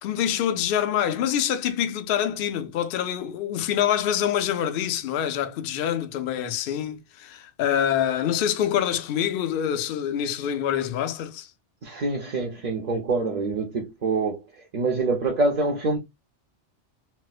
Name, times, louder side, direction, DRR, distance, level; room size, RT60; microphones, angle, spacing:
voice 1, 0.0-11.5, left 10 dB, 60° left, 0.6 m, -26 dB
voice 2, 11.8-16.0, right 3 dB, 45° right, 0.7 m, -26 dB
4.3 x 2.1 x 2.3 m
omnidirectional pair, 1.2 m